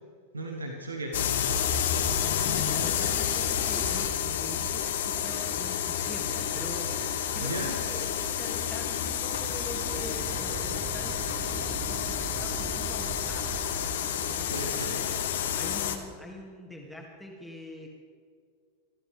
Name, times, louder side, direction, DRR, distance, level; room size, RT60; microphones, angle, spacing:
voice 1, 0.3-1.4 7.4-7.8 14.5-15.0, right 1 dB, 75° right, 2 dB, 1.7 m, -35 dB
sound 1, 1.1-16.0, left 9 dB, 60° left, 1.6 m, -30 dB
voice 2, 2.4-15.1 15.4-17.9, left 1 dB, ahead, -2 dB, 2.3 m, -44 dB
sound 2, 9.2-14.0, right 8 dB, 30° right, 0.6 m, -40 dB
26.5 x 13.0 x 3.5 m, 2.1 s
figure-of-eight pair, 90°, 0 cm